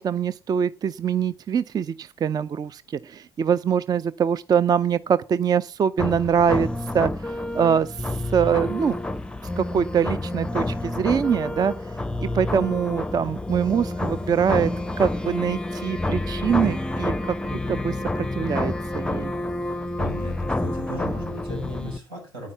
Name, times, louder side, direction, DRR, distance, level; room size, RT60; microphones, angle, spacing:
voice 1, 0.0-9.0 9.4-19.3, right 7 dB, 35° right, 0.5 m, -24 dB
sound 1, 6.0-22.0, left 1 dB, 10° left, 0.7 m, -28 dB
voice 2, 20.0-22.5, equal, 80° right, 6.1 m, -36 dB
9.6 x 9.4 x 5.6 m
figure-of-eight pair, 55°, 12 cm